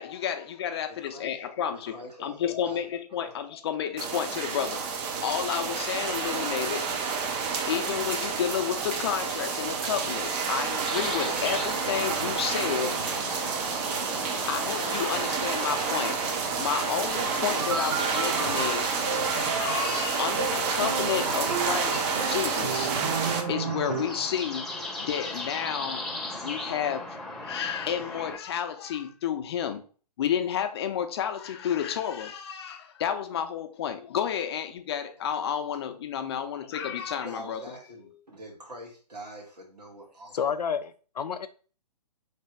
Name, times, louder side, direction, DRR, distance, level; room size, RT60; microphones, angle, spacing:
voice 1, 0.0-4.9 5.2-6.9 7.7-13.0 14.5-16.3 16.6-19.0 19.3-23.2 23.5-26.1 26.4-27.2 27.4-29.8 30.2-37.6, left 9 dB, 40° left, 0.6 m, -31 dB
voice 2, 0.9-1.4 1.7-2.8 3.2-3.3 37.2-40.6, equal, 80° right, 1.6 m, -44 dB
sound 1, 4.0-23.4, right 5 dB, 20° right, 0.5 m, -29 dB
sound 2, 10.8-28.4, left 2 dB, ahead, 0.8 m, -38 dB
sound 3, 17.2-24.3, right 5 dB, 45° right, 1.0 m, -33 dB
voice 3, 40.3-41.5, left 7 dB, 80° left, 0.4 m, -30 dB
3.3 x 3.3 x 4.4 m
figure-of-eight pair, 130°, 21 cm